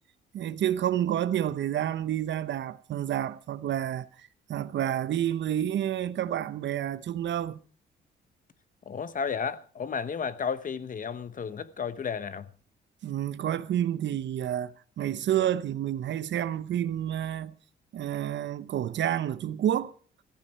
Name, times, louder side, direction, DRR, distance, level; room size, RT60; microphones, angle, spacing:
voice 1, 0.3-7.6 13.0-17.5 17.9-19.9, right 11 dB, 65° right, 0.9 m, -29 dB
voice 2, 8.9-12.5, left 6 dB, 40° left, 1.0 m, -33 dB
15.5 x 14.5 x 4.5 m
cardioid pair, 90°, 20 cm